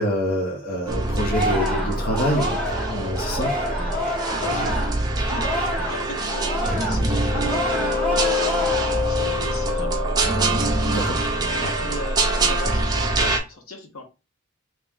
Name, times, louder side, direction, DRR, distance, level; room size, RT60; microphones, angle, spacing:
voice 1, 0.0-3.5 10.9-11.2 11.6-11.8, equal, 45° left, 0.8 m, -26 dB
sound 1, 0.9-13.4, right 1 dB, 20° right, 0.5 m, -24 dB
Singing, 1.3-6.0 6.3-9.1 9.5-9.8, equal, 5° left, 1.4 m, -28 dB
voice 2, 4.3-4.9 5.3-10.2 10.8-11.1 11.8-14.0, left 2 dB, 70° left, 1.0 m, -37 dB
3.0 x 3.0 x 3.5 m
head